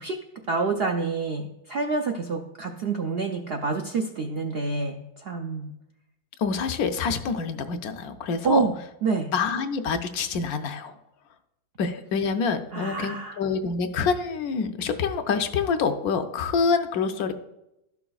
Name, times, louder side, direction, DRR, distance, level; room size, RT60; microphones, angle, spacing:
voice 1, 0.0-5.7 8.4-8.7 9.0-9.3 12.7-13.4, right 4 dB, 70° right, 3 dB, 0.5 m, -27 dB
voice 2, 6.4-8.7 9.3-10.9 11.8-17.3, left 5 dB, 70° left, 8 dB, 1.0 m, -26 dB
12.5 x 5.9 x 2.3 m, 0.87 s
omnidirectional pair, 1.7 m